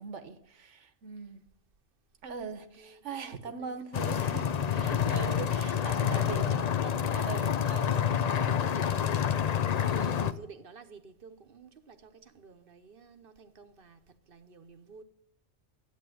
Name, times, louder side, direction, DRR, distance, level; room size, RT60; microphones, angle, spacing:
voice 1, 0.0-1.5 2.2-6.8 7.1-8.1 9.8-10.3, right 5 dB, 70° right, 1.3 m, -41 dB
voice 2, 3.2-3.8 4.3-4.5 4.9-5.4 6.0-7.4 7.6-9.5 9.9-14.0 14.3-15.0, right 5 dB, 50° right, 1.0 m, -50 dB
sound 1, 3.9-10.3, left 8 dB, 55° left, 0.4 m, -28 dB
11.0 x 8.7 x 7.8 m
omnidirectional pair, 1.3 m